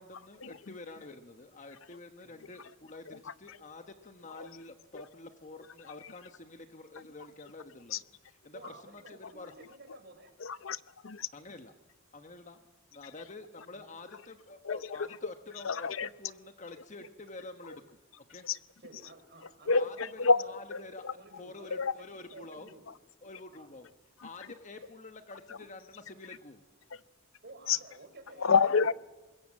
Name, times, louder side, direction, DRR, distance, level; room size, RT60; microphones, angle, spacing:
voice 1, 0.0-9.5 11.3-11.7 12.1-12.6 12.9-18.0 18.3-18.4 19.7-22.7 23.2-23.9 24.2-26.6, left 2 dB, 35° left, 8 dB, 1.2 m, -48 dB
voice 2, 8.5-10.3 13.7-13.9 18.8-20.6 21.2-22.1 22.3-22.9 23.5-23.7 24.7-24.9 27.4-28.7, right 2 dB, 55° right, 6 dB, 4.5 m, -53 dB
voice 3, 10.4-11.3 14.6-15.1 15.6-16.1 18.4-18.6 19.7-20.4 20.7-21.1 21.8-21.9 24.2-24.3 27.7-27.8 28.4-28.9, left 5 dB, 80° left, 16 dB, 0.7 m, -28 dB
24.5 x 21.5 x 7.3 m, 1.2 s
head